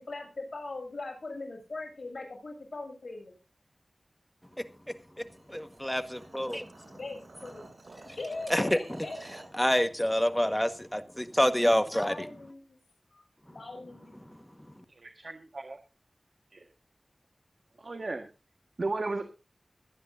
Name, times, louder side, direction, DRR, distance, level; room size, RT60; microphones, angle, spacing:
voice 1, 0.0-3.3 6.9-7.7 8.1-8.7 9.0-9.2 12.0-12.8 13.1-13.2 13.5-14.2, left 3 dB, 65° left, 7.3 m, -40 dB
sound 1, 5.2-9.6, right 2 dB, 75° right, 6.1 m, -51 dB
voice 2, 5.5-6.7 8.5-9.0 9.6-12.3, equal, 5° left, 1.5 m, -27 dB
voice 3, 15.0-15.8 16.5-16.6 17.8-18.3 18.8-19.2, right 3 dB, 60° right, 1.6 m, -35 dB
23.5 x 9.6 x 2.7 m
wide cardioid pair, 75°, 0 cm